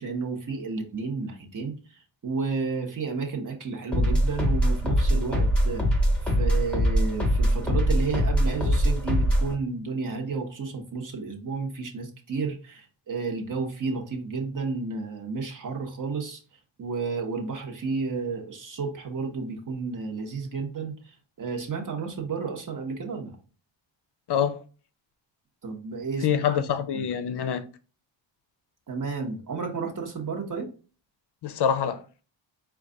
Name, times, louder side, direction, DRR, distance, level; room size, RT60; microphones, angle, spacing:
voice 1, 0.0-16.4 16.8-23.4 25.6-26.6 26.9-27.1 28.9-30.7, right 4 dB, 40° right, 1.0 m, -32 dB
sound 1, 3.9-9.5, equal, 5° left, 1.0 m, -23 dB
voice 2, 24.3-24.6 26.2-27.7 31.4-32.0, left 8 dB, 60° left, 0.5 m, -25 dB
4.5 x 2.4 x 3.8 m
wide cardioid pair, 120°, 46 cm